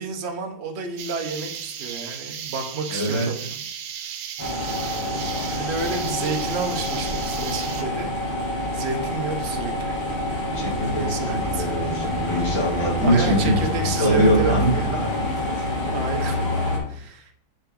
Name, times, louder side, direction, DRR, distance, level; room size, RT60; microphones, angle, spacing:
voice 1, 0.0-3.6 4.0-4.1 5.2-8.1 8.7-10.0 11.0-11.7 13.0-14.5 15.9-16.4 16.9-17.3, right 4 dB, 50° right, 4 dB, 0.8 m, -30 dB
sound 1, 1.0-7.8, right 8 dB, 90° right, 1.6 m, -35 dB
voice 2, 2.9-3.5 10.5-13.6 14.0-15.1, equal, 60° left, -6 dB, 3.8 m, -23 dB
sound 2, 4.4-16.8, left 1 dB, 75° left, 3.4 m, -27 dB
7.4 x 5.5 x 3.9 m, 0.64 s
omnidirectional pair, 2.4 m